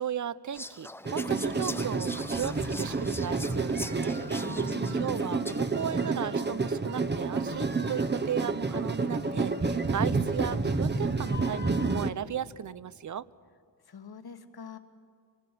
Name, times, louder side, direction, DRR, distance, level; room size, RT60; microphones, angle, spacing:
voice 1, 0.0-4.2 4.9-13.3, right 9 dB, 40° right, 18 dB, 0.6 m, -36 dB
Whispering, 0.5-5.8, left 1 dB, 5° left, 0.6 m, -42 dB
sound 1, 1.0-12.1, right 3 dB, 25° right, 1.0 m, -29 dB
voice 2, 4.4-5.1 13.9-14.8, left 5 dB, 55° left, 6 dB, 1.8 m, -44 dB
25.5 x 19.5 x 8.4 m, 2.2 s
cardioid pair, 80°, 46 cm